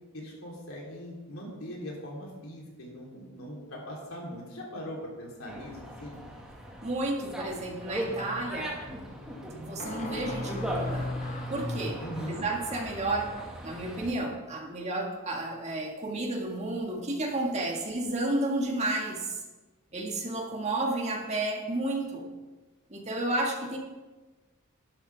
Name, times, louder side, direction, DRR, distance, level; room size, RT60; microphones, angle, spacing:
voice 1, 0.1-6.2 12.0-12.4, equal, 80° left, -2 dB, 3.4 m, -40 dB
Dog, 5.5-14.1, equal, 5° right, 1.8 m, -37 dB
voice 2, 6.8-8.8 9.6-11.1 11.5-13.3 13.6-19.4 19.9-22.2 22.9-23.8, right 2 dB, 30° right, 0 dB, 1.8 m, -32 dB
sound 1, 8.2-8.4 9.8-13.6, left 2 dB, 35° left, 1.2 m, -42 dB
12.0 x 11.5 x 3.5 m, 1.2 s
head